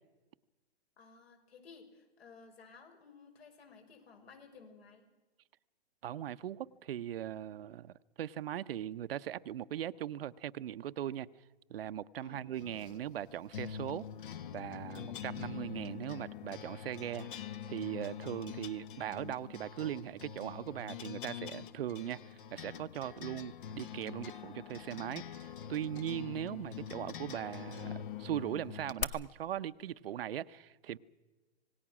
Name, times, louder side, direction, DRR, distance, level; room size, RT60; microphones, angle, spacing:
voice 1, 1.0-5.0 12.2-12.4 14.9-15.1, left 5 dB, 70° left, 6.3 m, -56 dB
voice 2, 6.0-11.3 11.7-14.1 14.5-31.0, right 11 dB, 65° right, 0.8 m, -39 dB
sound 1, 12.6-29.0, left 9 dB, 50° left, 1.1 m, -44 dB
26.5 x 18.5 x 6.1 m
hypercardioid pair, 140°, 32 cm